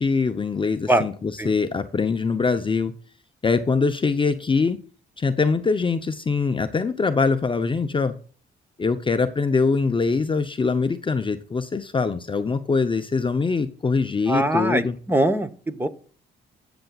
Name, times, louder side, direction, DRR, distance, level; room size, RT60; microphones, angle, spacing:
voice 1, 0.0-2.9 3.4-4.8 5.2-8.2 8.8-15.0, left 4 dB, 25° left, 8 dB, 0.7 m, -23 dB
voice 2, 14.3-14.8 15.1-15.9, right 1 dB, 10° right, 10 dB, 1.0 m, -21 dB
18.0 x 6.9 x 2.4 m, 0.43 s
cardioid pair, 90°, 20 cm